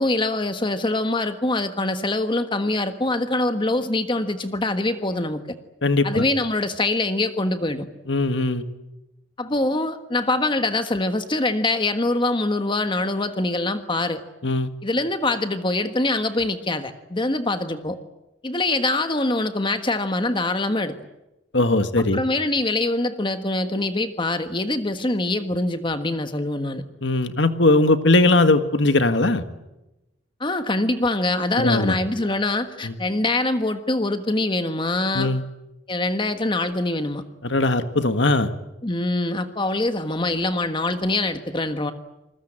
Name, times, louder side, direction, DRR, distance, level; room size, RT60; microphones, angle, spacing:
voice 1, 0.0-5.4 6.0-7.9 9.4-14.2 14.8-18.0 18.4-21.0 22.0-26.8 30.4-35.3 35.9-37.2 38.8-41.9, left 2 dB, 25° left, 9 dB, 1.5 m, -24 dB
voice 2, 5.8-6.2 8.1-8.7 14.4-14.7 21.5-22.2 27.0-29.5 31.6-32.0 32.8-32.9 35.1-35.4 37.4-38.5, left 2 dB, 65° left, 10 dB, 1.8 m, -19 dB
27.5 x 20.5 x 8.9 m, 0.96 s
head